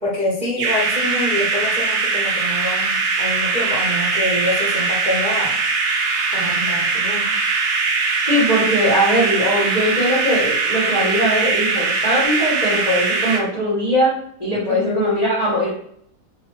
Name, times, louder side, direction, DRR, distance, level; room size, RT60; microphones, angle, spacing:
voice 1, 0.0-5.5 6.3-7.3 14.6-15.1, left 1 dB, 40° right, -8 dB, 0.7 m, -26 dB
sound 1, 0.6-13.4, right 4 dB, 85° right, 1.1 m, -21 dB
voice 2, 8.3-14.1 14.4-15.7, equal, 35° left, -7 dB, 0.8 m, -20 dB
2.7 x 2.2 x 2.9 m, 0.65 s
omnidirectional pair, 1.6 m